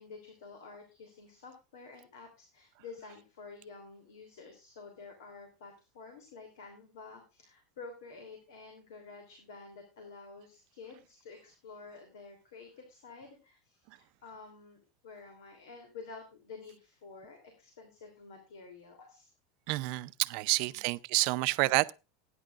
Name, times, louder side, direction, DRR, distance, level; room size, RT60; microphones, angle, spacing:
voice 1, 0.0-19.3 20.5-20.8 21.4-21.5, left 4 dB, 85° left, 3.1 m, -50 dB
voice 2, 19.7-21.9, right 22 dB, 60° right, 0.6 m, -29 dB
18.5 x 9.9 x 2.5 m
supercardioid pair, 120°, 2 cm